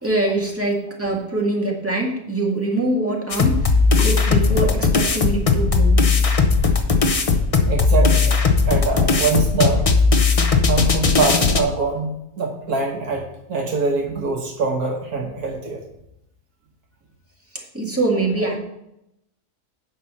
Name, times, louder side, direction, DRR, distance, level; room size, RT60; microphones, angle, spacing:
voice 1, 0.0-3.7 4.0-6.1 17.7-18.6, right 2 dB, 10° right, -2 dB, 1.8 m, -23 dB
sound 1, 3.3-11.6, left 4 dB, 35° left, 0.5 m, -17 dB
voice 2, 7.7-8.4 8.7-10.1 10.7-15.8, right 4 dB, 75° right, 0 dB, 1.7 m, -24 dB
9.1 x 5.4 x 5.7 m, 0.83 s
omnidirectional pair, 1.6 m